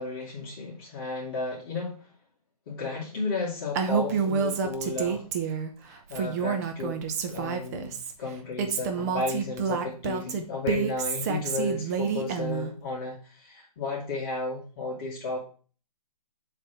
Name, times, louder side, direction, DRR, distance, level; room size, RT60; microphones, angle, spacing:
voice 1, 0.0-2.1 2.7-5.5 5.9-7.0 7.3-15.4, left 3 dB, 40° left, -6 dB, 2.2 m, -33 dB
Female speech woman speaking, 3.7-5.7 6.1-8.1 8.6-12.7, right 6 dB, 25° right, 0.7 m, -28 dB
7.3 x 3.4 x 6.0 m, 0.38 s
hypercardioid pair, 155°, 19 cm